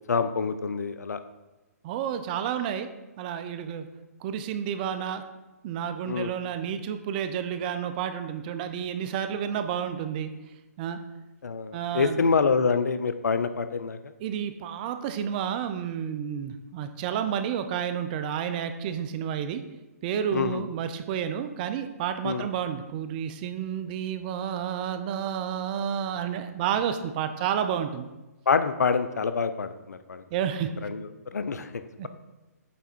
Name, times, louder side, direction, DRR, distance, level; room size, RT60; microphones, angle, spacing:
voice 1, 0.1-1.2 6.1-6.3 11.4-14.0 20.3-20.6 22.2-22.5 28.5-30.2 30.8-32.1, left 5 dB, 75° left, 11 dB, 0.5 m, -26 dB
voice 2, 1.8-2.9 3.2-3.9 4.2-5.2 5.6-10.3 10.8-11.0 11.7-12.2 14.2-19.6 20.0-28.1 30.3-30.7 32.0-32.1, right 8 dB, 30° right, 9 dB, 0.5 m, -30 dB
8.4 x 3.5 x 4.3 m, 1.0 s
hypercardioid pair, 135°, 9 cm